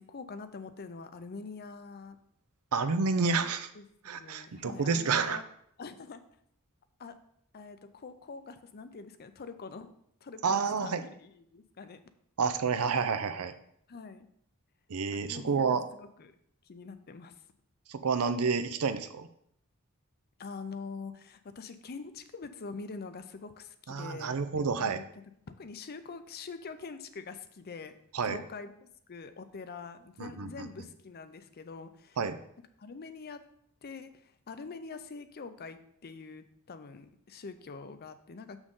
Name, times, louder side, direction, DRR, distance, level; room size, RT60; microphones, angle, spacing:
voice 1, 0.0-2.2 3.7-3.8 4.1-5.4 5.8-6.2 7.0-7.2 7.5-9.9 10.2-12.0 13.9-14.3 15.1-16.4 16.7-17.3 20.4-25.0 25.6-32.2 32.8-33.4 33.8-38.6, left 4 dB, 45° left, 11 dB, 0.5 m, -45 dB
voice 2, 2.7-3.7 4.0-5.4 10.4-11.0 12.4-13.5 14.9-15.9 17.9-19.3 23.9-25.0 28.1-28.4 30.2-30.7 32.2-32.4, right 5 dB, 75° right, 11 dB, 0.6 m, -29 dB
6.3 x 6.2 x 3.7 m, 0.69 s
head